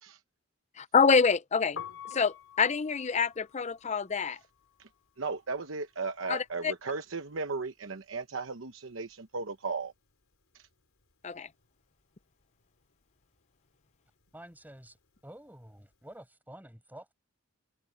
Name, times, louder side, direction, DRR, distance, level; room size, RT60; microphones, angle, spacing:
voice 1, 0.8-1.8 2.1-4.4 6.3-6.4 11.2-11.5, left 5 dB, 35° left, 0.5 m, -26 dB
Piano, 1.6-7.6 7.8-9.4 9.7-16.1, left 8 dB, 65° left, 4.4 m, -50 dB
voice 2, 5.2-9.9 10.5-10.7, right 4 dB, 65° right, 1.0 m, -36 dB
voice 3, 14.3-15.0 15.2-17.1, right 1 dB, 10° right, 7.8 m, -49 dB
head